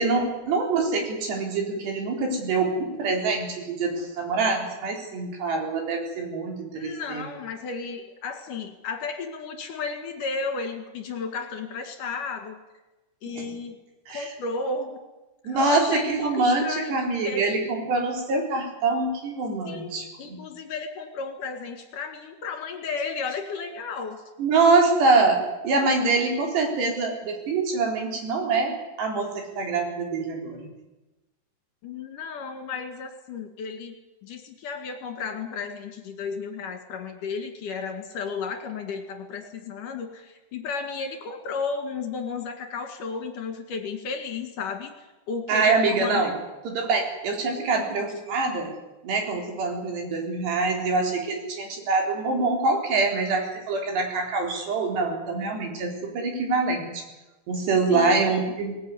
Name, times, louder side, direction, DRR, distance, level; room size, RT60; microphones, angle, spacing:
voice 1, 0.0-7.2 13.3-13.5 14.1-14.3 15.4-20.4 24.4-30.7 45.5-46.3 46.7-48.7 49.0-57.0 57.5-58.7, right 3 dB, 80° right, 2 dB, 5.9 m, -25 dB
voice 2, 6.7-12.6 13.2-13.7 14.1-15.0 15.4-17.5 19.6-24.2 31.8-33.9 34.2-46.3 57.9-58.2, left 4 dB, 55° left, 5 dB, 3.3 m, -33 dB
19.5 x 19.5 x 9.5 m, 1.1 s
omnidirectional pair, 4.8 m